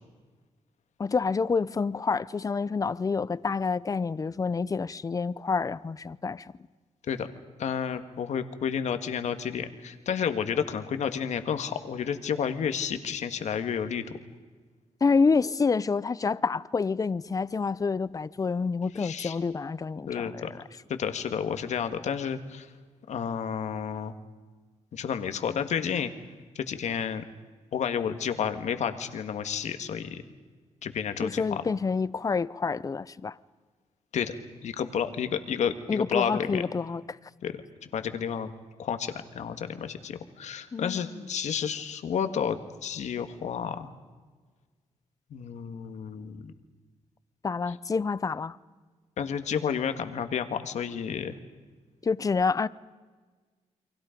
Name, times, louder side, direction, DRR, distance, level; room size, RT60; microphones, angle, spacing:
voice 1, 1.0-6.5 15.0-20.6 31.2-33.4 35.9-37.2 40.7-41.3 47.4-48.6 52.0-52.7, left 4 dB, 30° left, 0.6 m, -28 dB
voice 2, 7.6-14.2 19.0-19.3 20.1-20.5 20.9-22.7 23.1-24.2 24.9-26.1 26.5-27.2 27.7-30.2 30.8-31.6 34.1-34.3 34.6-36.6 37.4-38.5 38.8-43.9 45.3-46.5 49.2-51.4, left 7 dB, 75° left, 1.7 m, -31 dB
30.0 x 23.5 x 5.2 m
cardioid pair, 100°, 12 cm